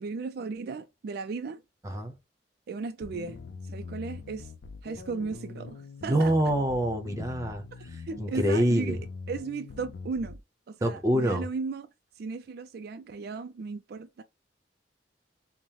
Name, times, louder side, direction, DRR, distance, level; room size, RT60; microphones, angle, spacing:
voice 1, 0.0-1.6 2.7-3.4 3.6-4.5 4.8-6.3 8.1-9.0 9.3-10.4 10.7-11.9 12.1-14.2, right 4 dB, 60° right, 0.3 m, -36 dB
voice 2, 1.8-2.1 6.1-7.6 8.2-9.0 10.8-11.5, equal, 20° right, 0.8 m, -25 dB
sound 1, 3.0-10.4, left 4 dB, 70° left, 0.4 m, -43 dB
5.3 x 2.1 x 3.0 m
head